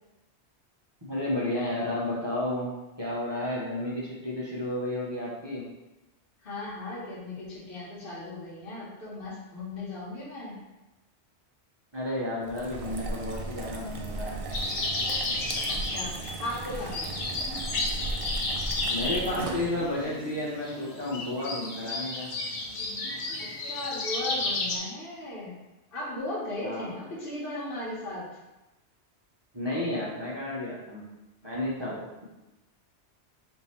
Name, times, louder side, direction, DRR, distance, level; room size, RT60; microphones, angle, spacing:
voice 1, 1.0-5.6 11.9-14.4 18.9-22.3 26.6-26.9 29.5-31.1 31.4-32.3, left 1 dB, 25° right, -7 dB, 0.8 m, -32 dB
voice 2, 6.4-10.6 15.7-17.4 23.4-25.5 25.9-28.3, left 2 dB, 55° left, -8 dB, 1.3 m, -37 dB
sound 1, 12.4-20.0, right 2 dB, 70° right, 0.3 m, -36 dB
sound 2, 14.5-24.8, left 2 dB, 80° left, 1.0 m, -32 dB
3.7 x 2.8 x 4.3 m, 1.0 s
omnidirectional pair, 1.2 m